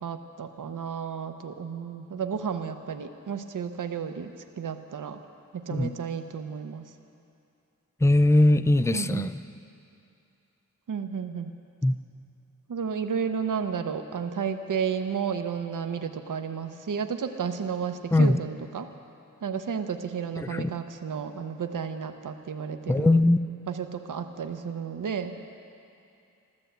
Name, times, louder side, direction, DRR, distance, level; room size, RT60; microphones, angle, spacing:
voice 1, 0.0-4.3 4.6-5.2 5.5-6.9 8.9-9.3 10.9-11.5 12.7-18.9 19.4-23.2 23.7-25.4, right 6 dB, 70° right, 7 dB, 0.8 m, -32 dB
voice 2, 8.0-9.4 11.8-12.0 18.1-18.4 20.4-20.7 22.9-23.4, left 1 dB, 10° left, 11 dB, 0.4 m, -21 dB
14.0 x 13.0 x 8.0 m, 2.6 s
wide cardioid pair, 120°, 33 cm